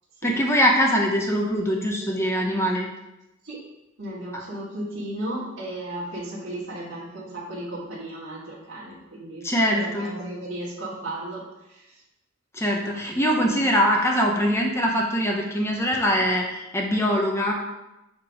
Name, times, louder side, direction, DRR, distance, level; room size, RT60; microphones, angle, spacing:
voice 1, 0.2-2.9 4.3-4.4 9.4-10.1 12.5-17.5, equal, 15° left, 1 dB, 0.7 m, -22 dB
voice 2, 4.0-9.5 9.7-11.4 11.7-11.8 13.4-13.5, right 1 dB, 60° right, -8 dB, 2.1 m, -35 dB
7.6 x 3.7 x 5.0 m, 0.93 s
head